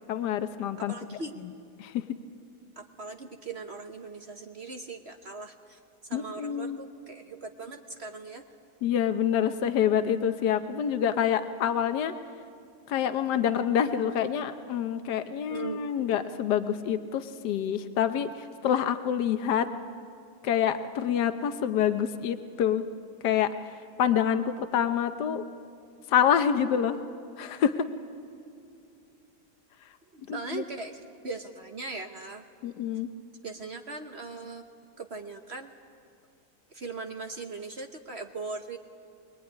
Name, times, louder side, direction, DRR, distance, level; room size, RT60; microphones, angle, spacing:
voice 1, 0.1-0.9 1.8-2.0 6.1-6.8 8.8-12.1 12.9-19.7 20.4-22.8 23.2-25.4 26.1-27.0 27.4-27.9 30.3-30.6 32.6-33.1, left 9 dB, 80° left, 9 dB, 1.4 m, -27 dB
voice 2, 0.8-1.4 2.8-8.4 15.5-15.8 30.1-32.4 33.4-34.6 35.0-35.7 36.7-38.8, right 3 dB, 45° right, 5 dB, 1.1 m, -39 dB
22.5 x 21.0 x 9.7 m, 2.3 s
omnidirectional pair, 1.8 m